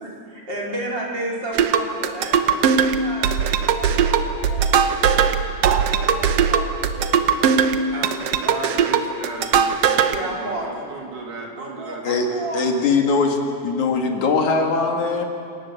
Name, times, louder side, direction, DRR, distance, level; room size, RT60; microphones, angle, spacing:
voice 1, 0.0-5.2 5.6-8.7 10.0-10.9 11.6-12.9, right 2 dB, 35° right, -2 dB, 4.4 m, -33 dB
sound 1, 1.5-10.2, right 7 dB, 65° right, 1.8 m, -19 dB
voice 2, 7.9-12.6, right 3 dB, 80° right, 2 dB, 4.2 m, -36 dB
voice 3, 12.5-15.2, left 4 dB, 70° left, 3 dB, 3.4 m, -21 dB
28.0 x 18.0 x 7.4 m, 2.5 s
omnidirectional pair, 3.5 m